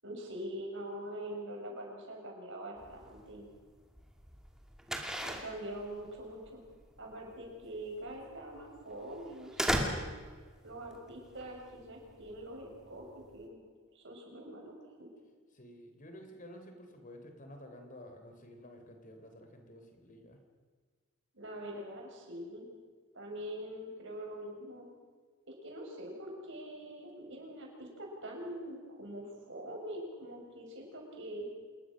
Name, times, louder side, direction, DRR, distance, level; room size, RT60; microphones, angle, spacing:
voice 1, 0.0-3.4 5.2-6.6 7.0-10.1 10.6-13.1 13.3-13.6 13.9-15.1 21.3-22.7 23.1-24.9 25.5-31.5, right 1 dB, 60° right, 0 dB, 7.1 m, -44 dB
sound 1, 2.8-13.4, equal, 5° right, 2.6 m, -39 dB
voice 2, 15.5-20.4, equal, 40° left, 5 dB, 3.5 m, -51 dB
27.5 x 21.5 x 6.4 m, 1.5 s
head